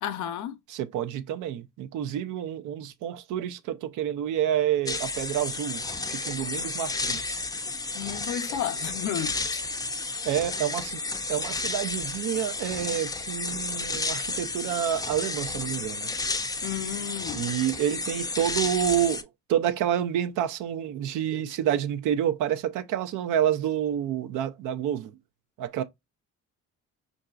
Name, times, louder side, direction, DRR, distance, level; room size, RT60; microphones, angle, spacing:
voice 1, 0.0-0.6 7.9-9.6 16.6-17.4, left 10 dB, 80° left, 0.6 m, -32 dB
voice 2, 0.7-5.8 6.1-7.4 10.2-11.0 11.3-16.1 17.3-25.2 25.6-25.8, right 10 dB, 90° right, 0.5 m, -28 dB
sound 1, 4.9-19.2, left 3 dB, 10° left, 0.4 m, -32 dB
4.6 x 2.6 x 2.3 m
cardioid pair, 90°, 30 cm